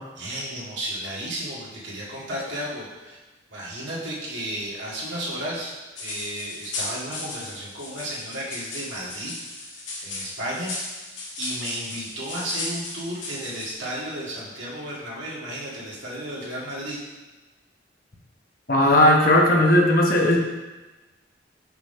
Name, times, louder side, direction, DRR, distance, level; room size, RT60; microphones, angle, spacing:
voice 1, 0.2-3.2 3.5-5.7 6.0-9.3 10.0-10.7 11.4-17.0, right 1 dB, 85° right, -6 dB, 2.0 m, -33 dB
sound 1, 6.0-13.7, left 2 dB, 85° left, 1.7 m, -36 dB
voice 2, 18.7-20.4, left 1 dB, 50° left, 0 dB, 1.0 m, -17 dB
5.8 x 3.9 x 5.5 m, 1.2 s
head